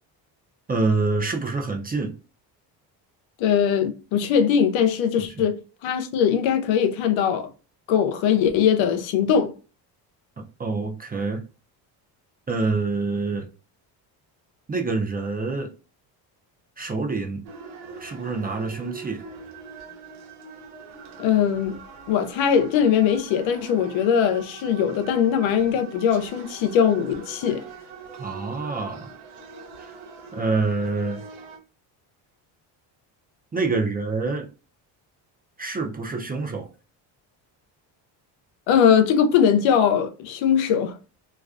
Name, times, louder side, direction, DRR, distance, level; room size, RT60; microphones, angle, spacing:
voice 1, 0.7-2.1 5.2-5.5 10.6-11.4 12.5-13.5 14.7-15.7 16.8-17.4 18.0-19.2 28.2-29.1 29.8-29.9 30.3-31.2 33.5-34.5 35.6-36.7, right 3 dB, 20° right, 0.5 m, -26 dB
voice 2, 3.4-7.5 7.9-9.5 21.2-21.8 22.1-27.6 38.7-40.9, left 8 dB, 75° left, 0.6 m, -21 dB
sound 1, 17.4-31.6, right 5 dB, 85° right, 0.8 m, -42 dB
2.3 x 2.3 x 2.4 m
supercardioid pair, 80°, 47 cm